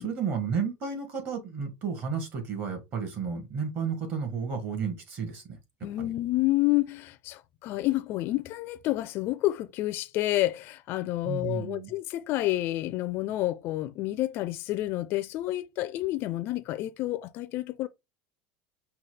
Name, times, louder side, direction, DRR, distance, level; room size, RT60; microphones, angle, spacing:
voice 1, 0.0-5.6 6.0-6.1 11.2-11.9, right 6 dB, 40° right, 1.6 m, -32 dB
voice 2, 5.8-17.9, left 16 dB, 45° left, 0.4 m, -29 dB
5.5 x 2.3 x 3.3 m
supercardioid pair, 145°, 5 cm